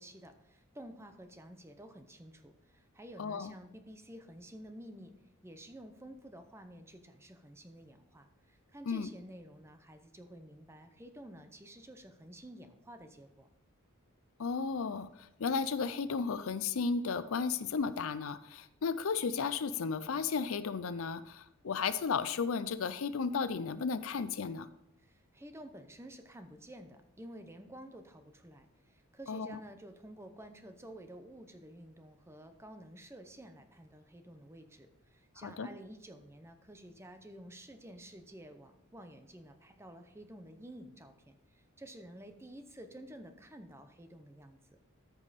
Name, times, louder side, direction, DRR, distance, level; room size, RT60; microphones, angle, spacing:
voice 1, 0.0-5.1 5.4-13.5 25.0-44.8, right 1 dB, 10° right, 8 dB, 0.7 m, -51 dB
voice 2, 3.2-3.5 8.9-9.1 14.4-24.7 29.3-29.6 35.4-35.7, left 5 dB, 65° left, 14 dB, 0.5 m, -34 dB
14.0 x 5.4 x 4.1 m, 0.81 s
head